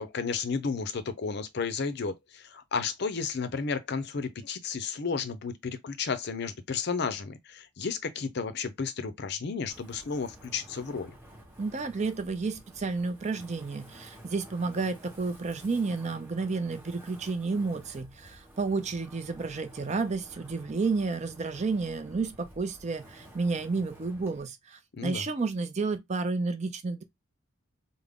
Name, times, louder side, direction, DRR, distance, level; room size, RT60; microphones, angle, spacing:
voice 1, 0.0-11.1 24.9-25.2, left 5 dB, 55° left, 0.5 m, -33 dB
Wind, 9.7-24.4, right 1 dB, 10° right, 0.9 m, -51 dB
voice 2, 11.6-27.0, right 4 dB, 35° right, 0.5 m, -31 dB
3.6 x 2.0 x 3.5 m
head